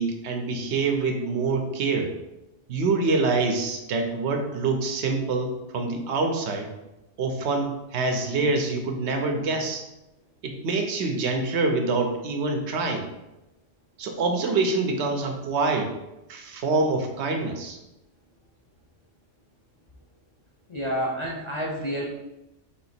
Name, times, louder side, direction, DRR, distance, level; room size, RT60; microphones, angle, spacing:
voice 1, 0.0-2.1 2.7-6.7 7.2-9.8 10.4-13.1 14.0-16.0 16.3-17.8, right 3 dB, 70° right, 4 dB, 0.9 m, -26 dB
voice 2, 20.7-22.0, equal, 35° left, -4 dB, 0.5 m, -29 dB
3.6 x 2.8 x 4.2 m, 0.95 s
omnidirectional pair, 1.2 m